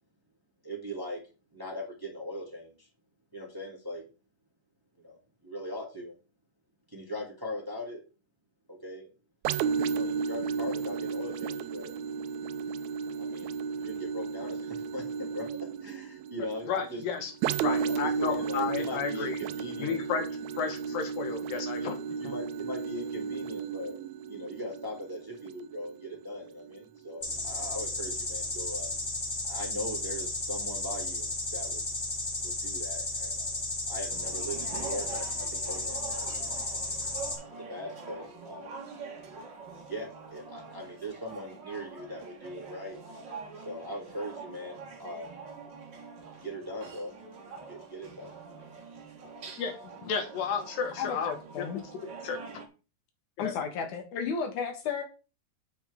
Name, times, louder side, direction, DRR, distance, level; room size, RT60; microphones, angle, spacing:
voice 1, 0.6-1.2 1.5-2.9 3.3-4.0 5.0-5.2 5.4-6.1 6.9-8.0 8.7-9.1 9.9-11.9 13.1-13.5 13.8-15.0 15.3-15.5 15.8-17.0 17.6-20.0 21.8-21.9 22.2-24.0 24.3-28.9 29.5-31.8 32.4-33.6 33.9-36.8 37.5-38.7 39.9-43.0 43.6-45.4 46.4-47.1 47.7-48.3, equal, 10° right, 1.9 m, -40 dB
sound 1, 9.4-27.0 27.5-27.6, right 6 dB, 90° right, 1.6 m, -34 dB
voice 2, 16.7-17.3 17.6-19.4 19.8-20.3 20.6-22.3 49.6-51.7 52.2-52.4 53.4-53.6, left 6 dB, 90° left, 3.0 m, -33 dB
sound 2, 27.2-37.3, left 2 dB, 30° left, 1.2 m, -34 dB
sound 3, 34.1-52.7, right 4 dB, 45° right, 1.8 m, -45 dB
voice 3, 51.0-51.8 53.4-55.0, left 6 dB, 70° left, 2.7 m, -33 dB
8.9 x 7.2 x 3.6 m
omnidirectional pair, 3.8 m